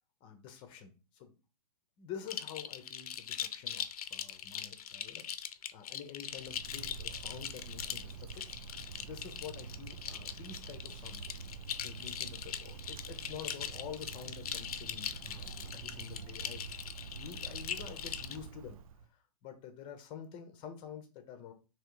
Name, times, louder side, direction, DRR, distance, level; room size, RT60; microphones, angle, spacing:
voice 1, 0.2-1.3 2.0-5.3 5.7-8.5 8.9-16.6 17.1-18.8 19.1-21.5, left 8 dB, 25° left, 7 dB, 0.7 m, -48 dB
sound 1, 2.3-18.4, left 9 dB, 65° left, 0.6 m, -41 dB
Wind, 6.2-19.1, right 6 dB, 60° right, 0.5 m, -47 dB
3.7 x 3.1 x 4.6 m, 0.32 s
hypercardioid pair, 145°, 20 cm